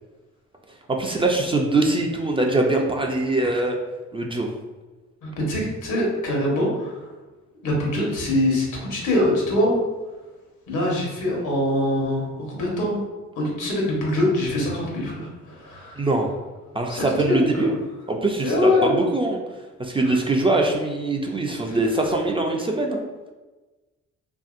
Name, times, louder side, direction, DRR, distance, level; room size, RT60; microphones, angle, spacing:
voice 1, 0.9-3.8 4.1-4.5 16.0-16.3 16.7-17.7 18.1-19.4 19.8-23.0, right 2 dB, 20° right, 1 dB, 0.3 m, -22 dB
voice 2, 5.2-7.1 7.6-9.8 10.7-13.0 13.3-16.1 16.9-17.4 18.4-19.0 20.0-20.2 21.7-21.8, left 1 dB, 80° left, -2 dB, 1.1 m, -23 dB
2.9 x 2.7 x 2.4 m, 1.2 s
cardioid pair, 90°, 30 cm